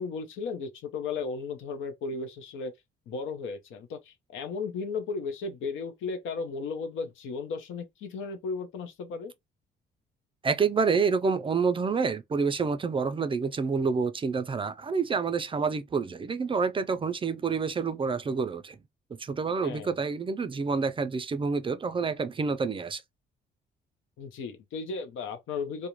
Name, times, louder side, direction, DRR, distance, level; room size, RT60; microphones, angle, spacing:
voice 1, 0.0-2.7 3.1-9.3 19.6-19.9 24.2-25.9, left 4 dB, 80° left, 0.6 m, -35 dB
voice 2, 10.4-18.8 19.2-23.0, right 5 dB, 25° right, 0.3 m, -28 dB
2.4 x 2.1 x 2.9 m
cardioid pair, 90°, 20 cm